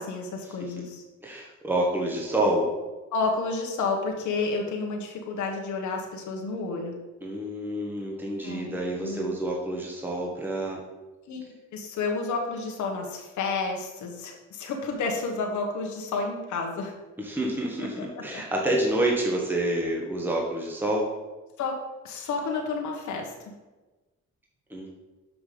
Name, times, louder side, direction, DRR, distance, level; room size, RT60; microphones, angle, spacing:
voice 1, 0.0-1.0 3.1-6.9 8.4-9.3 11.3-11.4 11.7-16.9 18.0-18.4 21.6-21.8 22.0-23.5, left 4 dB, 70° left, 1 dB, 1.4 m, -31 dB
voice 2, 1.2-2.7 7.2-10.8 17.2-21.1 24.7-24.9, right 1 dB, 5° right, -1 dB, 1.4 m, -28 dB
6.3 x 5.9 x 5.1 m, 1.2 s
cardioid pair, 90°, 30 cm